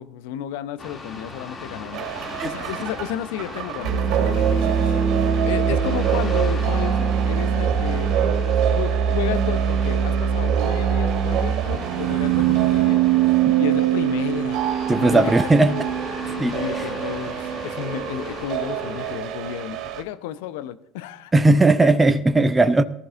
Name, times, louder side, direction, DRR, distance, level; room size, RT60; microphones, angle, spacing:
voice 1, 0.0-5.1 5.4-15.3 15.7-15.9 16.4-21.3, left 11 dB, 70° left, 0.8 m, -33 dB
sound 1, 0.8-19.2, left 2 dB, 30° left, 2.8 m, -39 dB
sound 2, 1.9-20.0, right 8 dB, 55° right, 2.3 m, -23 dB
voice 2, 14.9-15.7 16.4-16.5 21.3-22.8, right 2 dB, 15° right, 0.9 m, -17 dB
19.0 x 14.0 x 2.6 m
hypercardioid pair, 65°, 0 cm